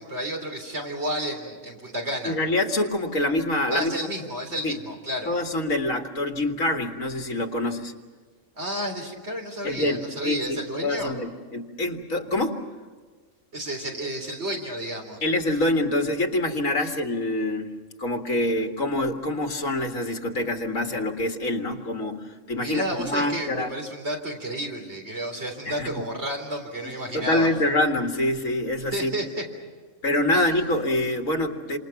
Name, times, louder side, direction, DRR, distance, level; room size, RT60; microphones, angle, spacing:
voice 1, 0.0-2.4 3.7-5.3 8.6-11.1 13.5-15.2 22.6-27.5 28.9-29.4 30.3-30.4, equal, 50° right, 2 dB, 4.1 m, -31 dB
voice 2, 2.2-3.9 4.6-4.8 5.3-7.9 9.6-12.6 15.2-17.7 18.0-23.7 25.7-26.0 26.8-29.1 30.0-31.8, left 1 dB, 70° left, 4 dB, 2.4 m, -26 dB
27.5 x 27.5 x 6.0 m, 1.5 s
omnidirectional pair, 1.4 m